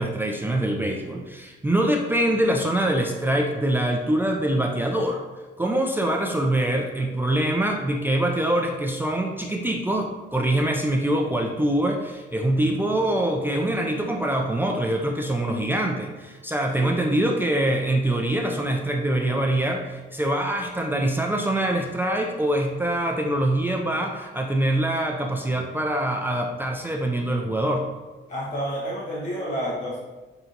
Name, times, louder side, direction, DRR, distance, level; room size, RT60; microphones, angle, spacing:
voice 1, 0.0-5.2 5.6-27.9, right 1 dB, 10° right, 0 dB, 0.4 m, -24 dB
voice 2, 28.3-30.0, equal, 40° left, -7 dB, 1.0 m, -29 dB
5.7 x 2.7 x 2.5 m, 1.2 s
cardioid pair, 90°, 20 cm